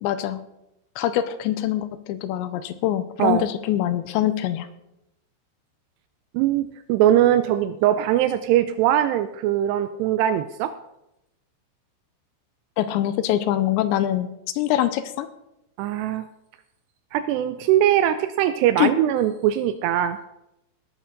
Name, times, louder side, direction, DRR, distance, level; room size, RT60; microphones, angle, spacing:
voice 1, 0.0-0.4 1.0-4.7 12.8-14.3 14.6-15.3 18.8-18.9, left 12 dB, 85° left, 12 dB, 2.9 m, -24 dB
voice 2, 6.3-10.7 15.8-16.2 17.1-20.2, right 12 dB, 85° right, 11 dB, 2.5 m, -21 dB
18.5 x 11.0 x 3.9 m, 0.88 s
omnidirectional pair, 5.3 m